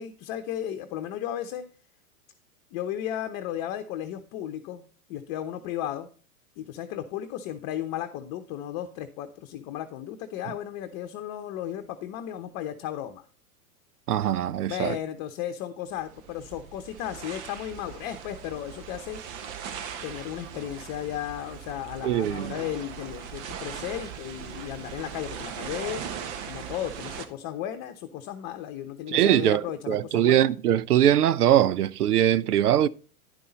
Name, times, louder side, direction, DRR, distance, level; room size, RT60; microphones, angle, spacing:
voice 1, 0.0-1.6 2.7-4.8 5.1-6.1 6.6-13.2 14.7-19.2 20.0-26.0 26.5-30.5, left 11 dB, 40° left, 0.9 m, -35 dB
voice 2, 14.1-15.0 22.0-22.5 29.1-32.9, right 11 dB, 85° right, 0.6 m, -22 dB
sound 1, 15.9-27.3, right 8 dB, 50° right, 1.3 m, -39 dB
10.5 x 5.5 x 4.0 m
hypercardioid pair, 110°, 44 cm